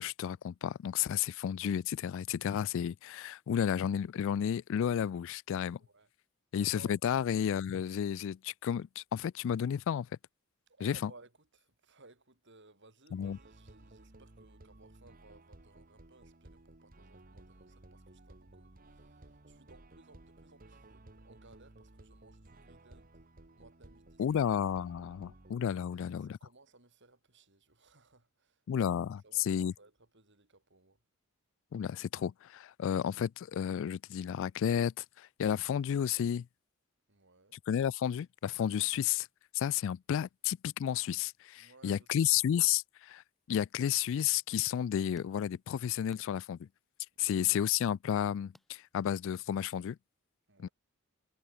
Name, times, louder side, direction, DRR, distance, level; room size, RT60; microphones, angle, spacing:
voice 1, 0.0-5.8 6.5-10.1 10.8-11.1 13.1-13.4 24.2-26.4 28.7-29.7 31.7-36.5 37.7-39.3 39.5-46.7 47.2-50.0 50.6-50.7, left 9 dB, 60° left, 0.3 m, -32 dB
voice 2, 5.8-6.1 6.7-7.0 10.7-23.1 23.6-24.5 25.9-29.0 29.2-31.0 37.1-37.6 41.6-42.3 47.1-47.5 50.5-50.7, right 3 dB, 55° right, 5.9 m, -61 dB
sound 1, 13.1-25.5, right 2 dB, 40° right, 1.6 m, -57 dB
sound 2, 43.7-49.3, equal, ahead, 4.4 m, -67 dB
head